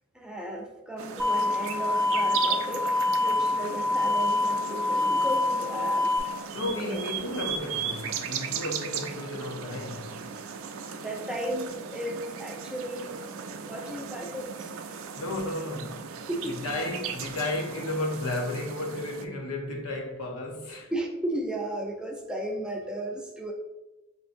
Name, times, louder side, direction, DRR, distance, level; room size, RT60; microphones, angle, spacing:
voice 1, 0.1-2.9 3.2-6.1 6.7-7.0 11.0-13.2 13.7-14.7 16.3-16.7 20.9-23.5, right 1 dB, 5° right, 0.4 m, -34 dB
sound 1, 1.0-19.3, right 7 dB, 70° right, 0.4 m, -37 dB
sound 2, 1.2-6.2, left 2 dB, 15° left, 0.8 m, -26 dB
voice 2, 6.5-10.2 15.1-16.1 16.5-20.9, left 2 dB, 90° left, 0.8 m, -33 dB
6.2 x 2.6 x 2.6 m
head